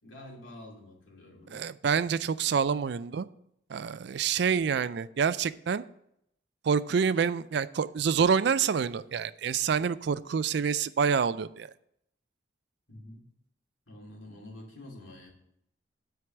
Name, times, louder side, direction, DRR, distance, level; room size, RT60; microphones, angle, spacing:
voice 1, 0.0-1.7 12.9-13.2 13.9-15.3, left 1 dB, 75° left, -1 dB, 2.5 m, -47 dB
voice 2, 1.5-3.3 3.7-5.8 6.6-11.7, right 6 dB, 60° right, 16 dB, 0.4 m, -27 dB
9.3 x 4.7 x 7.7 m, 0.75 s
head